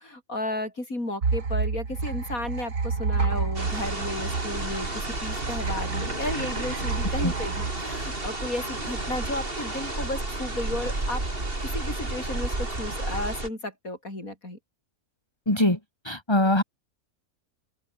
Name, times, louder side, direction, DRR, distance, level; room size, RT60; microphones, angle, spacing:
voice 1, 0.0-11.2 11.6-14.6, left 1 dB, 65° left, 8.3 m, -33 dB
sound 1, 1.2-8.7, right 4 dB, 85° right, 3.2 m, -30 dB
sound 2, 3.5-13.5, right 2 dB, 35° right, 4.3 m, -31 dB
voice 2, 15.5-15.8 16.0-16.6, left 1 dB, 15° left, 3.9 m, -22 dB
omnidirectional pair, 1.6 m